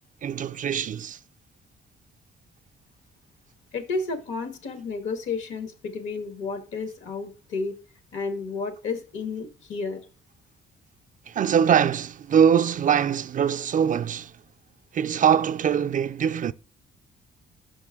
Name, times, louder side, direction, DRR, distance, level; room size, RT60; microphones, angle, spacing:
voice 1, 0.2-1.2 11.3-14.3 14.9-16.5, right 8 dB, 40° right, 0.4 m, -22 dB
voice 2, 3.7-7.7 8.1-10.0, left 4 dB, 80° left, 1.4 m, -31 dB
5.9 x 5.1 x 3.5 m
cardioid pair, 90°, 20 cm